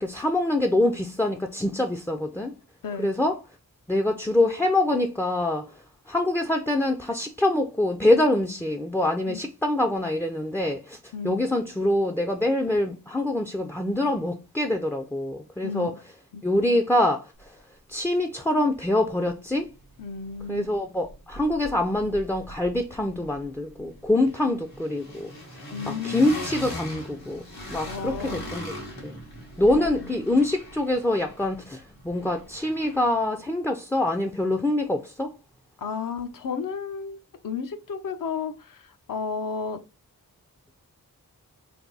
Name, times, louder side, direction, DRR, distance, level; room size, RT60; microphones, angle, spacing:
voice 1, 0.0-2.5 3.0-3.4 3.9-5.6 6.1-11.0 11.2-15.9 16.4-17.3 17.9-19.7 20.5-25.3 25.9-27.4 27.7-28.7 29.0-29.1 29.6-35.3, left 1 dB, 5° left, 0.4 m, -25 dB
voice 2, 2.8-3.2 9.3-9.4 11.1-11.5 15.6-15.9 16.3-16.4 20.0-20.7 24.5-24.6 25.7-26.8 27.8-28.5 29.8-30.4 35.8-37.2 37.4-39.8, left 5 dB, 65° left, 0.6 m, -33 dB
sound 1, 19.6-20.8 21.0-33.2, left 1 dB, 90° left, 1.7 m, -41 dB
3.4 x 2.6 x 3.9 m
wide cardioid pair, 75°, 36 cm